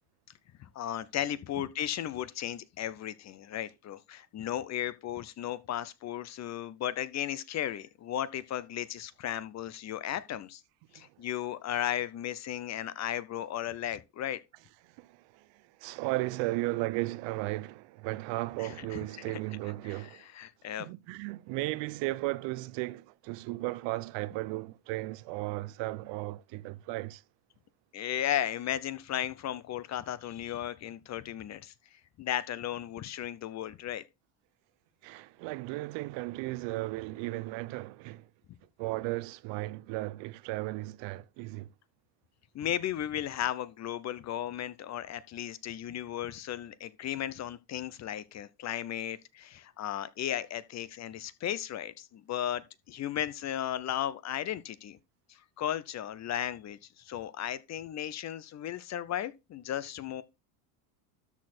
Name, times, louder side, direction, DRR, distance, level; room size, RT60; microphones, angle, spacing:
voice 1, 0.6-10.6 10.9-14.4 18.8-18.9 19.3-19.4 20.4-20.9 27.9-31.7 32.2-34.0 42.5-55.0 55.3-60.2, left 11 dB, 35° left, 0.6 m, -35 dB
voice 2, 14.8-20.3 20.8-27.2 35.0-38.3 38.8-41.7, right 20 dB, 60° right, 0.7 m, -35 dB
13.0 x 4.3 x 4.2 m
supercardioid pair, 115°, 49 cm